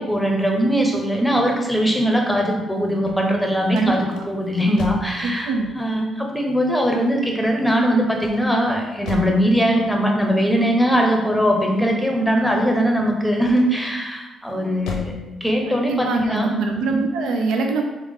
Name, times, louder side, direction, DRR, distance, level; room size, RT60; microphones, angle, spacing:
voice 1, 0.0-16.5, equal, 5° left, 1 dB, 0.8 m, -20 dB
sound 1, 2.9-5.2 8.2-9.5 13.4-13.9 14.4-15.2, left 3 dB, 85° left, 0.6 m, -35 dB
voice 2, 5.2-5.7 15.9-17.8, right 3 dB, 80° right, 3 dB, 0.4 m, -23 dB
3.5 x 3.5 x 3.6 m, 1.1 s
cardioid pair, 90°, 0 cm